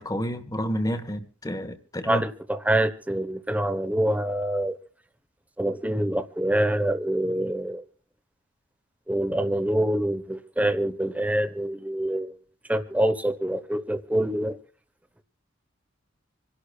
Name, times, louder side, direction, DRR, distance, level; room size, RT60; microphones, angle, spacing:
voice 1, 0.0-2.2, equal, 20° left, 1.3 m, -30 dB
voice 2, 2.0-4.8 5.6-7.8 9.1-12.4 12.7-14.6, right 1 dB, 10° right, 1.1 m, -25 dB
27.0 x 11.5 x 2.4 m
head